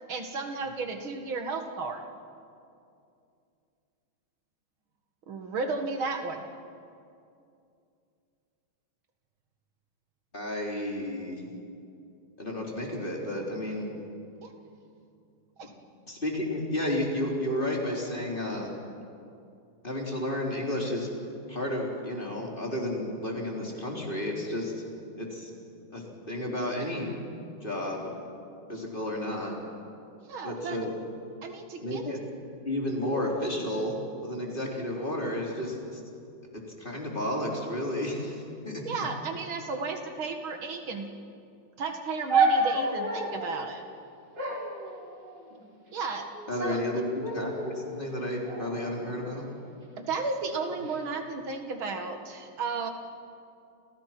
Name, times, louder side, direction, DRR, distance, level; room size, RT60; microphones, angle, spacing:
voice 1, 0.1-2.0 5.3-6.4 14.4-14.5 15.6-15.7 30.3-30.8 31.4-32.2 38.8-41.1 41.8-43.8 45.9-46.3 46.6-46.8 50.0-52.9, right 4 dB, 75° right, 5 dB, 2.7 m, -33 dB
voice 2, 10.3-11.4 12.4-13.8 16.1-18.7 19.8-21.1 21.5-24.8 25.2-25.5 25.9-27.1 27.6-28.1 28.7-29.5 30.4-30.9 31.8-32.2 32.7-36.0 36.5-38.8 46.5-49.5, left 1 dB, 25° left, -1 dB, 4.2 m, -32 dB
sound 1, 42.3-43.6 44.4-45.6 46.3-46.8 47.2-47.8 48.5-49.7 50.5-51.0, right 3 dB, 55° right, 5.1 m, -30 dB
29.5 x 29.0 x 6.0 m, 2.5 s
omnidirectional pair, 2.3 m